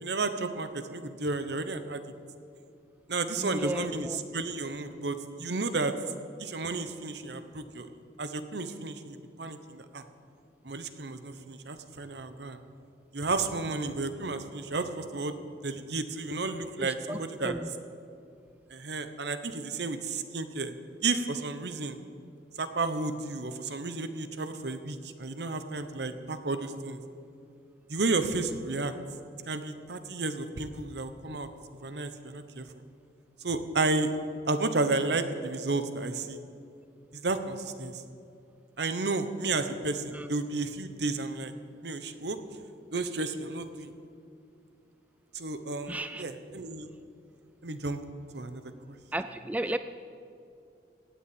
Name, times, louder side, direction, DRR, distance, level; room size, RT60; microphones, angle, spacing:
voice 1, 0.0-2.0 3.1-5.9 6.4-7.9 8.2-10.0 10.6-12.6 13.1-15.3 15.6-17.5 18.7-20.7 21.0-22.0 22.6-27.0 27.9-28.9 29.5-31.5 31.8-32.7 33.4-34.1 34.5-36.4 37.1-38.0 38.8-41.5 41.8-42.4 42.9-43.9 45.3-46.9 47.6-48.0 48.3-48.6, right 3 dB, 65° right, 10 dB, 1.0 m, -32 dB
voice 2, 3.4-4.2 16.8-17.2 17.4-17.7 40.1-40.3 45.9-46.3 49.1-49.8, right 1 dB, 10° right, 10 dB, 0.3 m, -34 dB
17.0 x 7.2 x 9.0 m, 2.5 s
head